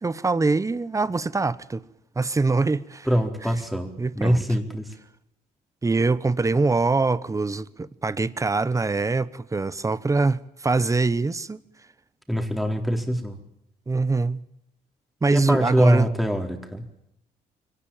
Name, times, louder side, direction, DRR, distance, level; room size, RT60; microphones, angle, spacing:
voice 1, 0.0-1.8 2.1-3.1 4.0-4.4 5.8-11.6 13.9-14.4 15.2-16.1, right 3 dB, 20° right, 1.1 m, -23 dB
voice 2, 3.1-3.9 4.1-4.9 12.3-13.4 15.3-16.9, equal, ahead, 4.1 m, -24 dB
23.5 x 19.0 x 9.1 m
cardioid pair, 90°, 17 cm